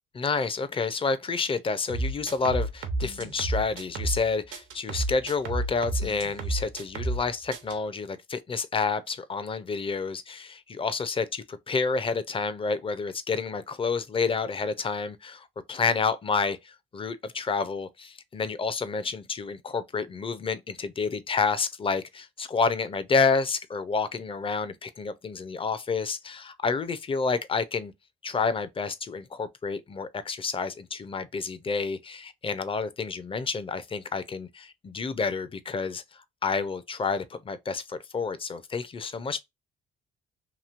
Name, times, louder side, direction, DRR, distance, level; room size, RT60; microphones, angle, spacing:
voice 1, 0.1-27.9 28.2-39.4, left 4 dB, 25° left, 0.5 m, -29 dB
sound 1, 1.9-4.2 4.5-7.2 7.5-7.7, right 2 dB, 85° right, 0.8 m, -31 dB
3.0 x 2.7 x 2.5 m
cardioid pair, 90°, 20 cm